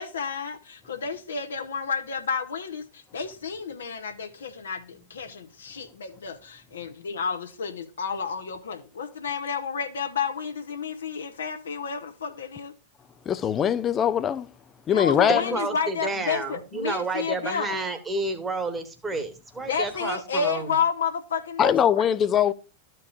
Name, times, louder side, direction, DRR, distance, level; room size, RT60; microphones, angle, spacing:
voice 1, 0.0-12.7 14.9-17.8 19.7-22.1, left 6 dB, 70° left, 0.8 m, -31 dB
voice 2, 13.3-14.5 14.9-15.6 21.6-22.5, left 9 dB, 25° left, 0.4 m, -22 dB
voice 3, 15.3-20.8, right 3 dB, 15° right, 1.2 m, -30 dB
13.5 x 4.5 x 2.4 m
figure-of-eight pair, 90°, 0 cm